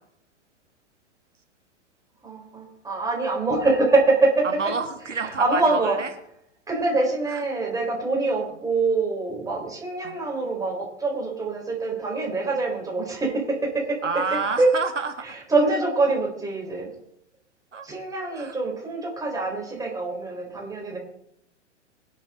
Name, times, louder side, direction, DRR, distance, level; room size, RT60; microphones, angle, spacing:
voice 1, 2.2-4.5 5.2-6.0 6.7-14.0 14.6-14.7 15.5-16.9 17.8-21.0, right 3 dB, 10° right, -1 dB, 4.7 m, -24 dB
voice 2, 4.4-6.1 7.3-7.4 10.0-10.2 14.0-15.2 17.7-17.9 18.3-18.6, right 5 dB, 80° right, 6 dB, 2.0 m, -29 dB
25.5 x 8.5 x 3.9 m, 0.75 s
figure-of-eight pair, 110°, 36 cm